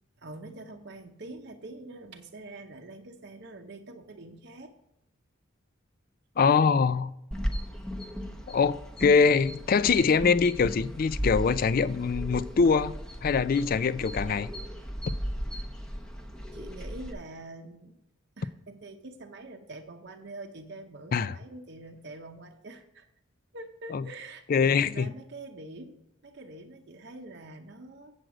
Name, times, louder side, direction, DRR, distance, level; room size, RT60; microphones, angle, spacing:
voice 1, 0.2-4.7 8.1-8.5 16.5-18.0 18.4-23.1 23.5-26.0 26.2-28.1, right 2 dB, 55° right, 0.7 m, -45 dB
voice 2, 6.4-7.1 8.5-12.9 13.2-14.5 21.1-21.3 23.9-24.0 24.5-25.1, left 5 dB, 45° left, 0.3 m, -23 dB
sound 1, 7.3-17.1, equal, 5° left, 0.7 m, -36 dB
7.8 x 7.8 x 4.9 m
head